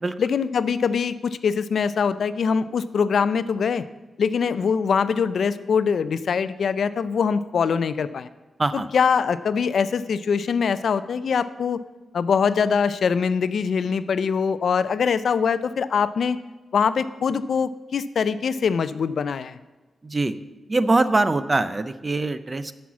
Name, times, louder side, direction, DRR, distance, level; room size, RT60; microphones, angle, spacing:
voice 1, 0.2-3.8 4.2-8.3 8.7-11.8 12.1-16.4 16.7-19.6, left 6 dB, 65° left, 14 dB, 0.4 m, -23 dB
voice 2, 20.0-20.4 20.7-22.7, right 2 dB, 20° right, 13 dB, 0.4 m, -22 dB
10.0 x 6.3 x 7.2 m, 1.2 s
wide cardioid pair, 170°, 0 cm